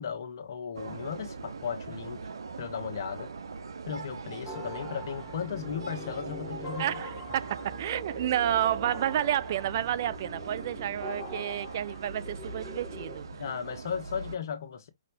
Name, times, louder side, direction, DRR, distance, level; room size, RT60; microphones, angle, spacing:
voice 1, 0.0-2.3 2.6-3.3 3.9-6.9 13.3-14.9, left 7 dB, 50° left, 1.1 m, -36 dB
sound 1, 0.7-14.4, right 4 dB, 65° right, 0.9 m, -41 dB
sound 2, 4.5-13.2, equal, ahead, 2.0 m, -42 dB
voice 2, 6.8-13.3, right 11 dB, 40° right, 0.4 m, -30 dB
5.6 x 3.1 x 2.7 m
hypercardioid pair, 140°, 2 cm